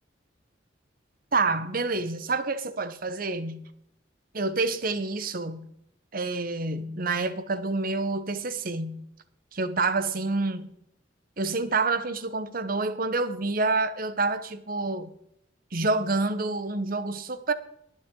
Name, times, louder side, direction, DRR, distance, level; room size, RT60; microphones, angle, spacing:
voice 1, 1.3-3.7 4.3-5.7 6.1-9.0 9.5-10.7 11.4-15.1 15.7-17.5, right 3 dB, 45° right, 1.0 m, -28 dB
21.5 x 7.4 x 3.8 m
head